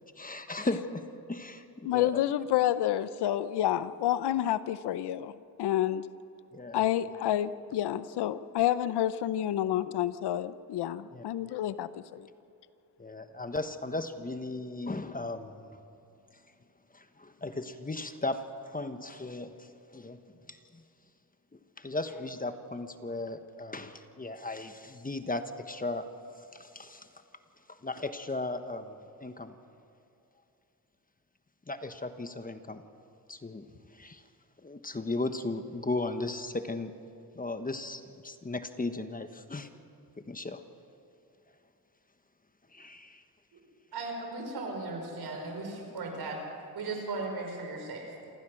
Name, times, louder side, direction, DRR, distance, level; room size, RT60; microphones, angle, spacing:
voice 1, 0.2-2.2 6.5-6.8 11.1-11.2 13.0-15.8 16.9-20.2 20.5-20.8 21.5-26.1 26.4-27.1 27.7-29.5 31.7-32.8 33.3-33.7 33.9-34.2 34.6-36.9 37.3-39.7 40.2-40.6 42.7-43.2, left 2 dB, 20° left, 9 dB, 1.3 m, -36 dB
voice 2, 1.8-5.3 5.6-6.1 6.7-12.3, left 12 dB, 85° left, 15 dB, 0.8 m, -29 dB
voice 3, 43.9-46.4 46.7-48.1, right 3 dB, 70° right, 3 dB, 5.0 m, -37 dB
28.0 x 15.0 x 6.4 m, 2.7 s
cardioid pair, 75°, 39 cm